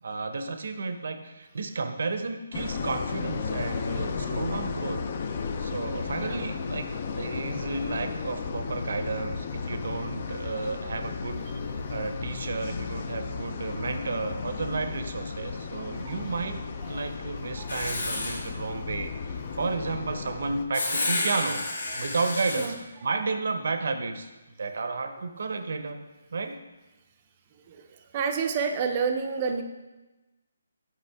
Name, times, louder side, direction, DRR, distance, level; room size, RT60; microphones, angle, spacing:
voice 1, 0.0-11.5 11.9-16.6 16.9-21.6 21.9-22.7 23.0-24.3 24.6-26.0 26.3-26.6, right 3 dB, 65° right, 8 dB, 0.7 m, -32 dB
sound 1, 2.5-20.7, left 5 dB, 40° left, 0.5 m, -34 dB
voice 2, 6.1-6.6 11.6-12.1 15.9-16.1 16.8-17.0 17.3-17.7 21.9-22.0 22.5-22.8 27.6-29.6, right 5 dB, 30° right, 5 dB, 0.5 m, -31 dB
Writing, 17.7-18.5 20.7-22.7, left 2 dB, 75° left, 1.8 m, -30 dB
8.0 x 5.2 x 3.5 m, 1.1 s
hypercardioid pair, 165°, 0 cm